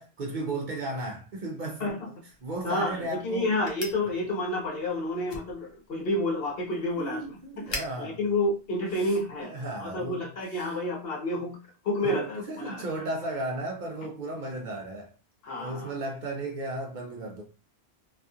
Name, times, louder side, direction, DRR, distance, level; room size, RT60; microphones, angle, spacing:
voice 1, 0.0-3.5 7.0-8.2 9.0-10.8 12.0-15.1 15.6-17.4, right 2 dB, 55° right, 0.6 m, -35 dB
voice 2, 2.6-7.2 7.7-11.6 11.8-12.8 15.4-15.9, left 1 dB, 65° left, 0.9 m, -30 dB
sound 1, 3.6-9.4, left 2 dB, 40° left, 0.4 m, -45 dB
2.8 x 2.4 x 2.3 m
omnidirectional pair, 1.1 m